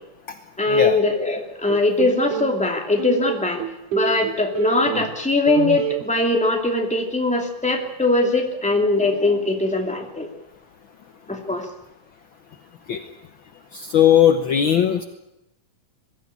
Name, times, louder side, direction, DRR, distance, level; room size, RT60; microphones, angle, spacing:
voice 1, 0.6-3.6 3.9-10.3 11.3-11.7, left 2 dB, ahead, 2 dB, 2.1 m, -21 dB
sound 1, 1.7-2.5 3.0-5.2 5.5-6.0, right 10 dB, 75° right, 2.5 m, -28 dB
voice 2, 13.7-15.0, left 10 dB, 70° left, 7 dB, 1.1 m, -18 dB
21.5 x 15.0 x 9.9 m, 0.86 s
omnidirectional pair, 3.7 m